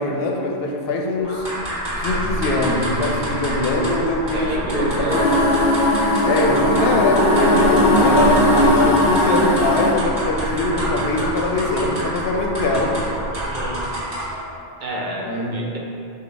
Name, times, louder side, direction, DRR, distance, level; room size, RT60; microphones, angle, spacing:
voice 1, 0.0-1.4 2.0-5.4 6.3-13.1 15.2-15.8, left 2 dB, 80° left, 0 dB, 0.8 m, -22 dB
sound 1, 1.2-14.4, equal, 25° right, 1.4 m, -26 dB
voice 2, 4.3-5.4 13.3-13.8 14.8-15.8, right 1 dB, 60° right, -1 dB, 0.6 m, -28 dB
sound 2, 5.1-9.9, left 1 dB, 50° left, 0.7 m, -17 dB
5.1 x 2.4 x 4.4 m, 2.7 s
omnidirectional pair, 1.0 m